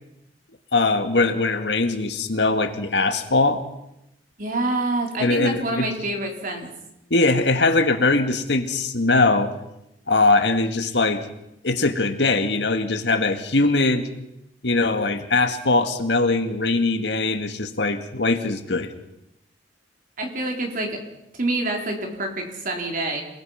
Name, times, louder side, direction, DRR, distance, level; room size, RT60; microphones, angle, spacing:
voice 1, 0.7-3.6 5.2-5.9 7.1-9.5 10.1-11.3 11.6-14.1 14.6-18.9, left 3 dB, 70° left, 7 dB, 2.1 m, -21 dB
voice 2, 4.4-6.7 20.2-21.0 21.4-23.2, right 2 dB, 50° right, 2 dB, 4.3 m, -26 dB
28.0 x 20.0 x 5.9 m, 0.85 s
head